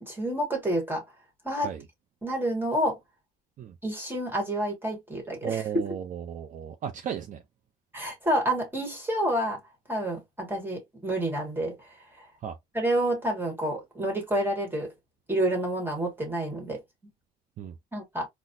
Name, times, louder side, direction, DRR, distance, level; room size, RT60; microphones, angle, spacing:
voice 1, 0.0-1.0 1.4-1.7 2.2-3.0 3.8-5.9 7.9-9.6 9.9-12.3 12.7-14.9 15.3-16.8 17.9-18.3, right 1 dB, 10° right, 1.2 m, -29 dB
voice 2, 5.4-7.4 12.4-12.6 17.6-17.7, right 8 dB, 50° right, 0.5 m, -34 dB
4.0 x 2.0 x 2.5 m
cardioid pair, 110°, 17 cm